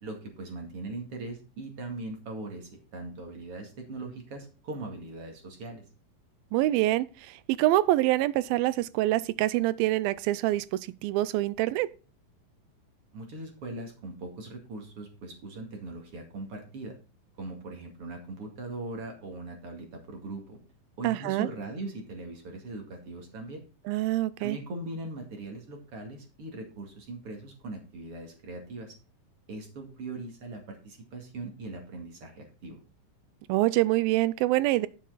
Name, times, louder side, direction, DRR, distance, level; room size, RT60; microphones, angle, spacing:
voice 1, 0.0-5.8 13.1-17.0 17.4-20.6 21.0-23.6 24.4-28.9 29.5-32.8, right 2 dB, 45° right, 2.7 m, -40 dB
voice 2, 6.5-7.1 7.5-10.7 11.0-11.9 21.0-21.5 23.9-24.6 33.5-34.9, right 16 dB, 90° right, 2.4 m, -25 dB
10.0 x 7.4 x 4.0 m
omnidirectional pair, 4.1 m